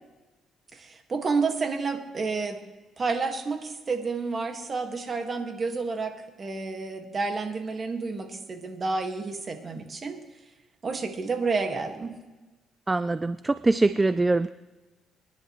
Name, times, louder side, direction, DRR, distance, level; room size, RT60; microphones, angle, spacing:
voice 1, 0.7-2.6 3.0-10.2 10.8-12.1, right 4 dB, 40° right, 5 dB, 1.8 m, -30 dB
voice 2, 12.9-14.5, right 2 dB, 20° right, 14 dB, 0.4 m, -23 dB
26.5 x 10.5 x 3.1 m, 1.2 s
cardioid pair, 90°, 0 cm